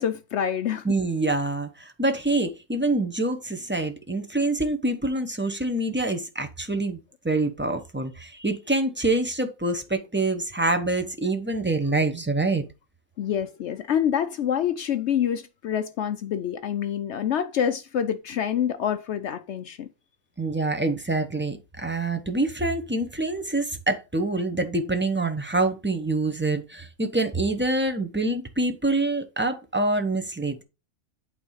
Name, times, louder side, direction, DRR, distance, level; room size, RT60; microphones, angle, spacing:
voice 1, 0.0-0.9 13.2-19.9, left 9 dB, 70° left, 0.7 m, -26 dB
voice 2, 0.8-7.0 7.2-12.6 20.4-30.6, right 2 dB, 15° right, 0.4 m, -26 dB
8.6 x 3.7 x 5.5 m
omnidirectional pair, 1.6 m